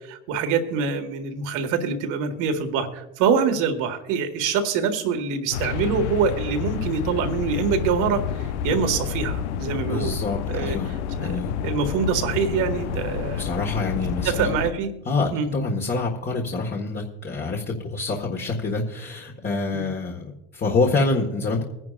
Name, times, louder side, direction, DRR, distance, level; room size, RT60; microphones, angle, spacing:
voice 1, 0.1-8.3 8.6-10.2 10.5-10.8 11.2-11.4 11.6-13.5 14.2-14.9 15.3-15.5 19.7-19.9, right 6 dB, 65° right, 6 dB, 1.9 m, -25 dB
sound 1, 5.5-14.7, left 7 dB, 85° left, 0.7 m, -29 dB
voice 2, 9.9-10.9 11.2-11.5 13.4-14.5 15.0-21.6, left 3 dB, 30° left, 0 dB, 1.7 m, -26 dB
22.0 x 10.5 x 2.5 m, 1.0 s
hypercardioid pair, 85°, 34 cm